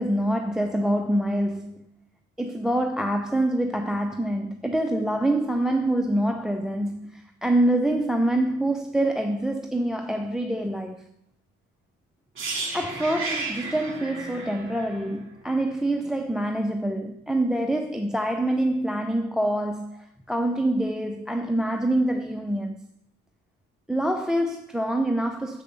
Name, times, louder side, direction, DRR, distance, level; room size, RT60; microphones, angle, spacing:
voice 1, 0.0-1.9 2.4-11.1 12.7-22.8 23.9-25.6, right 1 dB, ahead, 0.4 m, -25 dB
sound 1, 12.3-16.2 16.5-16.7, right 3 dB, 40° right, 2.3 m, -34 dB
6.8 x 4.9 x 6.7 m
cardioid pair, 90°, 30 cm